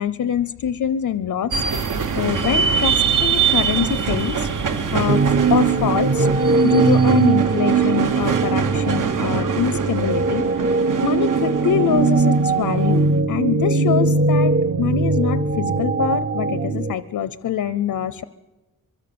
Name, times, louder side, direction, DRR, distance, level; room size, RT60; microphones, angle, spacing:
voice 1, 0.0-1.6 2.2-4.5 4.9-6.3 6.6-10.4 11.0-18.2, left 9 dB, 85° left, 15 dB, 0.7 m, -24 dB
sound 1, 1.5-13.1, right 6 dB, 70° right, 1.3 m, -24 dB
sound 2, 5.1-16.9, right 4 dB, 35° right, 0.7 m, -20 dB
23.5 x 23.0 x 6.9 m, 1.2 s
wide cardioid pair, 175°, 33 cm